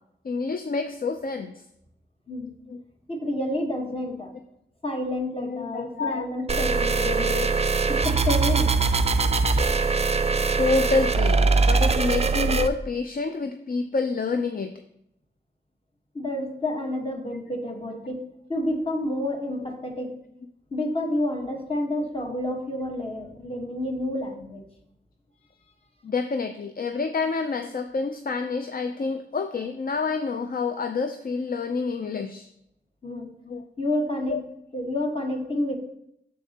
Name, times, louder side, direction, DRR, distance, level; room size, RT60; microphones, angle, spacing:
voice 1, 0.2-1.5 2.7-2.8 5.4-6.3 6.6-6.7 7.0-7.5 10.6-14.7 26.0-32.5 33.5-33.6 34.3-34.4, left 4 dB, 50° left, 7 dB, 0.4 m, -28 dB
voice 2, 3.1-4.3 4.8-7.4 7.9-8.7 16.1-20.1 20.7-24.7 33.0-33.3 33.8-34.4 34.7-35.8, left 1 dB, 30° left, 1 dB, 1.2 m, -29 dB
sound 1, 6.5-12.7, right 4 dB, 35° right, 0.4 m, -22 dB
6.6 x 6.4 x 2.8 m, 0.79 s
cardioid pair, 45°, 19 cm